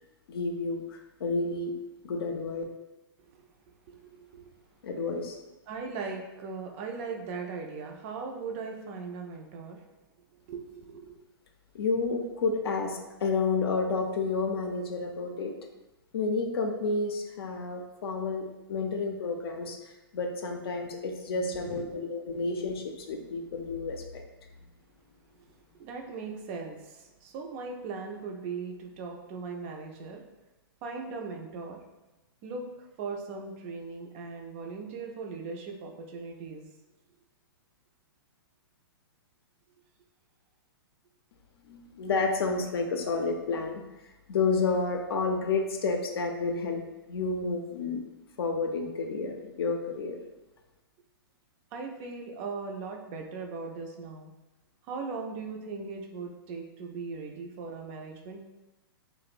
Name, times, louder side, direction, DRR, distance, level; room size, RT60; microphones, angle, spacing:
voice 1, 0.3-1.7 2.0-2.6 4.8-5.4 11.7-15.5 16.1-18.4 18.7-19.8 20.1-24.2 41.6-43.8 44.3-46.8 47.1-48.0 48.4-50.2, left 4 dB, 75° left, 4 dB, 0.4 m, -30 dB
voice 2, 3.9-4.5 5.7-9.8 10.5-11.2 21.4-22.4 25.3-30.2 30.8-31.8 32.4-32.7 33.0-36.7 51.7-54.3 54.9-58.4, right 4 dB, 35° right, 2 dB, 0.3 m, -39 dB
2.8 x 2.0 x 2.4 m, 1.0 s
hypercardioid pair, 135°, 13 cm